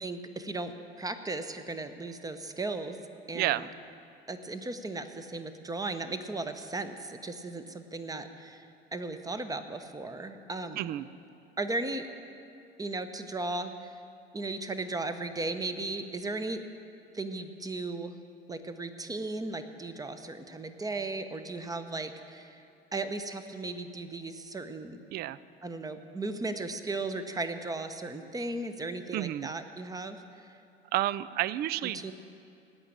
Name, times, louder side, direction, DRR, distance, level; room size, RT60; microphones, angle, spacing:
voice 1, 0.0-3.0 3.3-3.7 4.3-8.7 8.9-10.9 11.6-12.1 12.8-13.9 14.3-16.6 17.1-18.1 18.5-22.6 22.9-25.0 25.6-30.6 31.9-32.1, right 2 dB, 10° right, 10 dB, 0.9 m, -36 dB
voice 2, 3.3-3.7 10.8-11.1 25.1-25.4 29.1-29.5 30.9-32.1, right 14 dB, 35° right, 18 dB, 0.4 m, -30 dB
17.5 x 5.9 x 9.0 m, 2.6 s
figure-of-eight pair, 75°, 30 cm